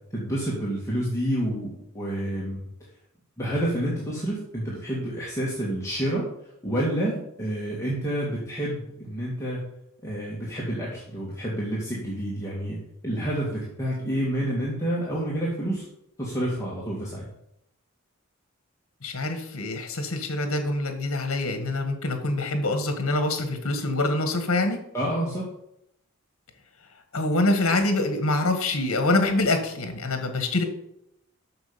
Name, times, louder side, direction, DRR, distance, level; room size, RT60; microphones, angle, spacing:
voice 1, 0.1-1.7 1.9-2.6 3.4-6.2 6.6-9.6 10.0-12.8 13.0-15.9 16.2-17.2 24.9-25.4, right 1 dB, 15° left, -6 dB, 2.0 m, -28 dB
voice 2, 19.0-24.8 27.1-30.6, left 2 dB, 65° left, 6 dB, 1.8 m, -25 dB
7.9 x 6.5 x 6.9 m, 0.77 s
head